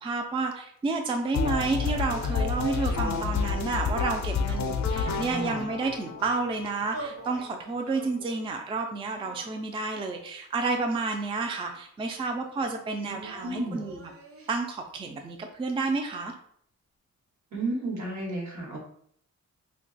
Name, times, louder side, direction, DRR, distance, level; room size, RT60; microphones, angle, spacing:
voice 1, 0.0-14.0 14.5-16.3, right 3 dB, 20° right, 4 dB, 0.3 m, -30 dB
sound 1, 1.3-7.3, left 5 dB, 65° left, 0.5 m, -29 dB
voice 2, 5.0-5.7 13.0-13.9 17.5-18.8, right 2 dB, 70° right, -1 dB, 1.2 m, -33 dB
sound 2, 6.9-7.5 7.9-8.5 9.2-10.1 10.8-11.8 13.2-14.6, right 2 dB, 50° right, 0.6 m, -45 dB
2.7 x 2.2 x 3.9 m, 0.64 s
wide cardioid pair, 125°, 29 cm